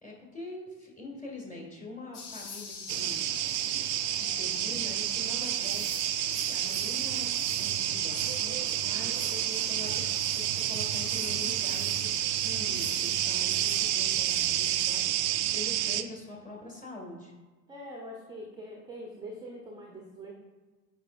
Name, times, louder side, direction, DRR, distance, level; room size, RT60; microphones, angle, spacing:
voice 1, 0.0-3.2 4.2-6.0 6.5-9.2 9.7-15.1 15.5-17.3, left 2 dB, 15° left, -2 dB, 1.9 m, -44 dB
sound 1, 2.1-15.1, left 5 dB, 60° left, 1.3 m, -42 dB
sound 2, 2.9-16.0, right 13 dB, 45° right, 0.4 m, -30 dB
voice 2, 9.3-9.7 17.7-20.3, equal, 10° right, 0 dB, 0.8 m, -43 dB
9.1 x 4.6 x 2.5 m, 1.3 s
figure-of-eight pair, 75°, 49 cm